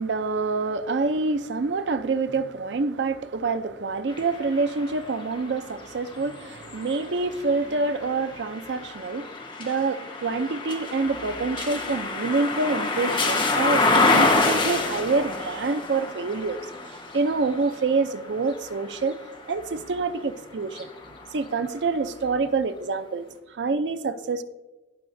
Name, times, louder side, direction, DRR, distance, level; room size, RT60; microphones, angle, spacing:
voice 1, 0.0-9.3 9.6-16.6 17.1-19.2 19.5-20.9 21.3-24.4, right 3 dB, 80° right, 0.5 m, -26 dB
sound 1, 4.1-20.0 20.6-21.8, left 3 dB, 30° left, 1.2 m, -28 dB
16.5 x 5.7 x 2.6 m
head